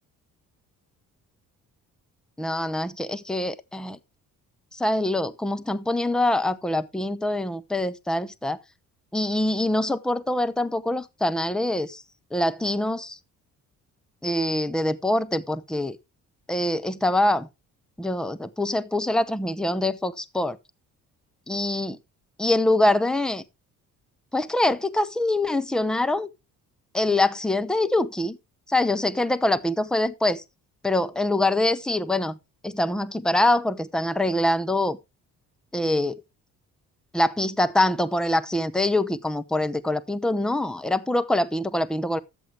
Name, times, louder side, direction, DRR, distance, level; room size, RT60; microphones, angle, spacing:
voice 1, 2.4-4.0 4.7-8.6 9.1-12.0 12.3-13.2 14.2-16.0 16.5-17.5 18.0-20.6 21.5-22.0 22.4-23.4 24.3-26.3 26.9-28.4 28.7-30.4 30.8-32.4 32.6-35.0 35.7-36.2 37.1-42.2, left 1 dB, ahead, 0.7 m, -24 dB
11.5 x 7.7 x 3.3 m
hypercardioid pair, 45°, 44 cm